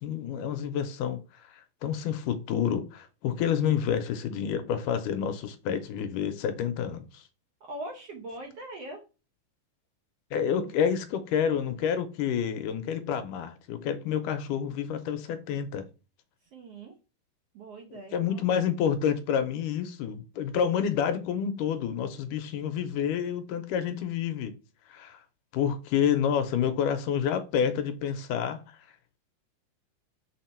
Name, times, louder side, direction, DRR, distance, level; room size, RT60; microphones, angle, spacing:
voice 1, 0.0-7.2 10.3-15.9 17.9-24.6 24.9-25.2 25.5-28.8, left 8 dB, 80° left, 2.2 m, -29 dB
voice 2, 7.6-9.0 10.5-10.7 16.4-16.9 17.5-18.5, right 2 dB, 65° right, 1.6 m, -42 dB
6.4 x 3.8 x 4.3 m
omnidirectional pair, 3.9 m